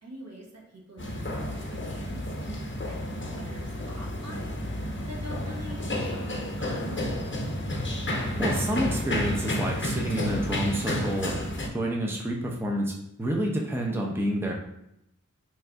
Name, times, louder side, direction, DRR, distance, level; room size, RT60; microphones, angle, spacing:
voice 1, 0.0-7.2, equal, 55° right, -2 dB, 1.1 m, -45 dB
sound 1, 1.0-11.7, left 1 dB, 40° left, 0.9 m, -31 dB
voice 2, 8.4-11.4 11.7-12.9 13.2-14.5, right 1 dB, 5° right, -1 dB, 0.7 m, -28 dB
3.2 x 2.5 x 4.5 m, 0.81 s
wide cardioid pair, 45°, 31 cm